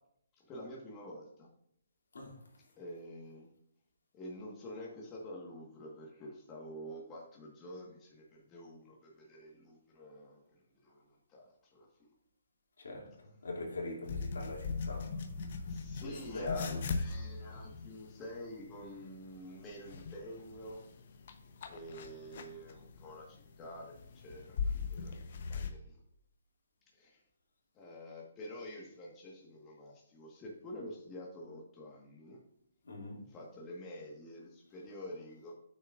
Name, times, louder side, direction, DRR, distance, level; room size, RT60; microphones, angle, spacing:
voice 1, 0.5-1.5 2.8-3.5 4.1-10.4 10.8-11.9 15.7-20.8 21.7-26.0 26.9-27.2 27.8-32.4 33.3-35.5, equal, 20° left, 1.6 m, -48 dB
voice 2, 2.1-2.4 12.8-15.8 16.0-16.8 32.8-33.3, left 2 dB, 75° left, 2.8 m, -42 dB
sound 1, 14.0-25.7, left 4 dB, 50° left, 1.0 m, -41 dB
8.8 x 6.5 x 2.6 m
hypercardioid pair, 150°, 0 cm